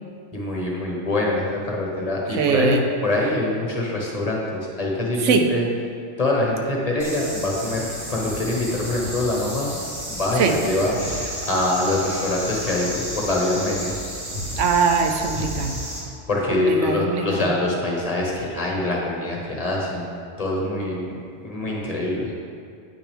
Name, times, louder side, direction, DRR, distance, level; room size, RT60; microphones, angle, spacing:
voice 1, 0.3-5.7 6.2-13.9 16.3-22.3, left 2 dB, 35° left, -3 dB, 1.1 m, -24 dB
voice 2, 2.4-2.8 5.2-5.5 10.4-10.6 14.6-15.8 16.7-17.4, right 5 dB, 85° right, 4 dB, 1.0 m, -21 dB
sound 1, 7.0-16.0, equal, 45° right, 2.3 m, -32 dB
8.8 x 5.9 x 3.4 m, 2.3 s
omnidirectional pair, 1.2 m